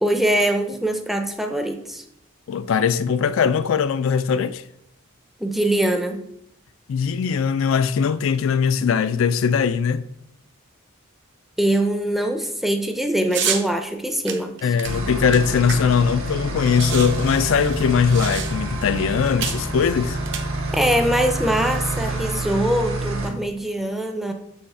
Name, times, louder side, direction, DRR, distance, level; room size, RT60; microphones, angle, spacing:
voice 1, 0.0-2.0 5.4-6.2 11.6-14.8 20.7-24.3, right 1 dB, ahead, 0.5 m, -23 dB
voice 2, 2.5-4.6 6.9-10.0 14.6-20.2, left 6 dB, 65° left, 0.3 m, -20 dB
sound 1, 13.3-13.7 14.3-16.1 16.3-16.4 16.6-18.8 19.4-19.7 20.2-21.0, right 8 dB, 55° right, 0.7 m, -30 dB
sound 2, 14.8-23.3, right 1 dB, 80° right, 1.4 m, -28 dB
6.5 x 5.6 x 4.2 m
head